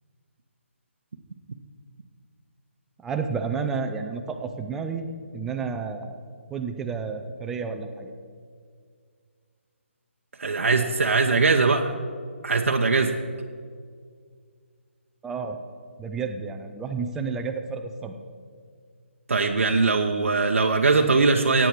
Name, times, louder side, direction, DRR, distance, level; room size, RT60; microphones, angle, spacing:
voice 1, 3.0-6.2 6.5-8.1 15.2-15.6 16.0-18.1, right 5 dB, 5° right, 5 dB, 0.4 m, -31 dB
voice 2, 10.4-11.9 12.4-13.2 19.3-21.7, right 4 dB, 85° right, 3 dB, 0.9 m, -21 dB
16.5 x 8.9 x 4.7 m, 2.1 s
hypercardioid pair, 165°, 7 cm